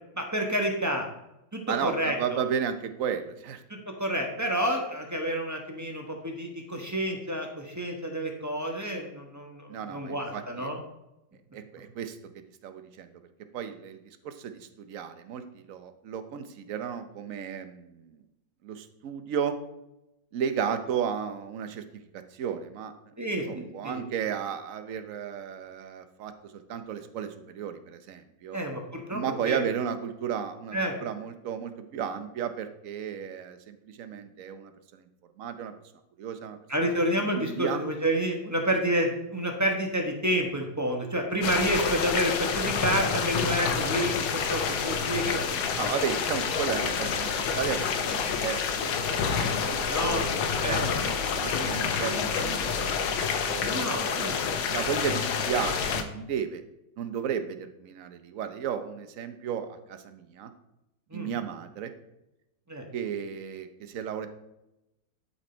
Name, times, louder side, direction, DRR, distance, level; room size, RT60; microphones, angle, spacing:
voice 1, 0.1-1.1 1.5-2.4 3.9-10.8 23.2-24.0 28.5-29.6 30.7-31.0 36.7-45.4 49.9-50.3 50.6-51.1 53.6-54.4 54.7-54.9 61.1-61.3 62.7-62.8, right 1 dB, 10° right, 2 dB, 0.9 m, -29 dB
voice 2, 1.7-3.6 9.7-10.7 11.5-12.2 12.6-13.1 13.5-18.2 18.6-19.6 20.3-21.8 22.1-22.9 23.5-28.6 29.1-35.1 35.4-35.7 36.2-36.9 37.4-37.8 45.8-54.2 54.7-56.6 57.0-60.5 61.1-61.9 62.9-64.3, right 8 dB, 60° right, 10 dB, 0.9 m, -34 dB
sound 1, 41.4-56.0, left 6 dB, 85° left, 1.7 m, -28 dB
11.5 x 5.5 x 4.4 m, 0.89 s
omnidirectional pair, 2.1 m